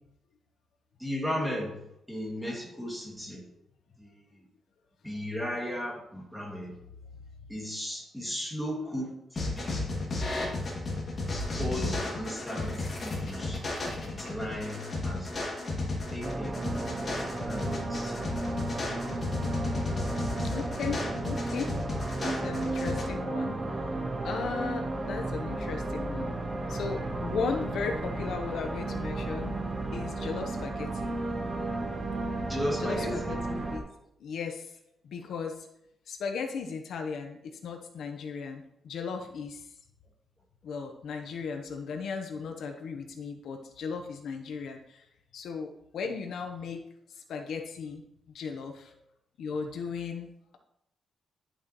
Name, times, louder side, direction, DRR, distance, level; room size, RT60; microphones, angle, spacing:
voice 1, 1.0-1.8 2.1-3.4 4.0-4.1 5.0-6.7 7.5-9.9 11.6-13.6 14.0-15.5 16.1-16.6 17.5-18.2 32.5-33.3, equal, ahead, -3 dB, 2.1 m, -35 dB
sound 1, 9.4-23.0, left 2 dB, 30° left, 2.2 m, -33 dB
sound 2, 16.2-33.8, right 2 dB, 20° right, 0.9 m, -34 dB
voice 2, 20.4-21.7 22.2-23.8 24.2-26.3 26.7-29.6 29.9-31.1 32.8-33.9 34.2-34.7 35.0-35.7 36.1-39.7 40.6-45.1 45.3-46.8 47.1-48.0 48.3-48.9 49.4-50.6, left 5 dB, 65° left, 4 dB, 0.9 m, -36 dB
11.0 x 7.0 x 3.0 m, 0.78 s
wide cardioid pair, 180°, 0 cm